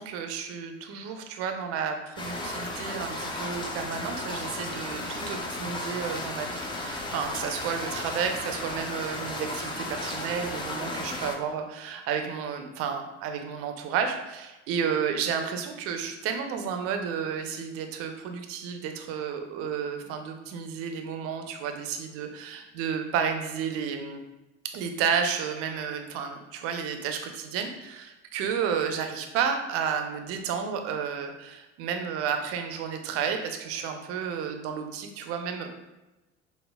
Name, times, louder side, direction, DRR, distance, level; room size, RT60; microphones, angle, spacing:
voice 1, 0.0-24.2 24.7-35.8, right 7 dB, 40° right, 5 dB, 0.5 m, -31 dB
sound 1, 2.2-11.4, left 2 dB, 15° left, 0.4 m, -34 dB
5.2 x 2.1 x 2.2 m, 1.0 s
figure-of-eight pair, 65°, 36 cm